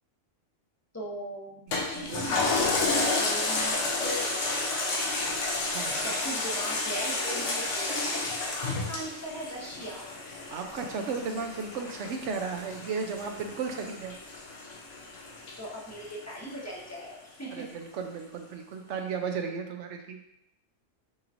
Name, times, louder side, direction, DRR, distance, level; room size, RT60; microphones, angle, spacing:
voice 1, 0.9-4.3 6.0-8.2 8.6-10.0 15.6-17.6, right 1 dB, 15° left, -4 dB, 1.0 m, -39 dB
Toilet flush, 1.7-16.5 17.0-17.1, left 3 dB, 75° left, 1.1 m, -31 dB
voice 2, 1.9-2.5 5.7-6.1 10.5-14.1 17.5-20.2, right 5 dB, 70° right, 4 dB, 0.9 m, -35 dB
6.9 x 3.1 x 2.5 m, 0.80 s
omnidirectional pair, 1.3 m